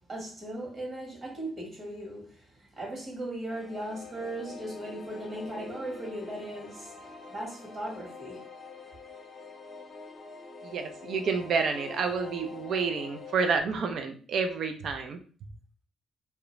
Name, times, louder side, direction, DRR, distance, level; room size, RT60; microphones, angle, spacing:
voice 1, 0.1-8.5, right 1 dB, 40° right, 1.1 m, -38 dB
sound 1, 3.5-13.6, left 4 dB, 40° left, 0.7 m, -45 dB
voice 2, 10.6-15.2, right 5 dB, 65° right, 0.4 m, -29 dB
2.4 x 2.1 x 3.0 m
cardioid pair, 90°, 0 cm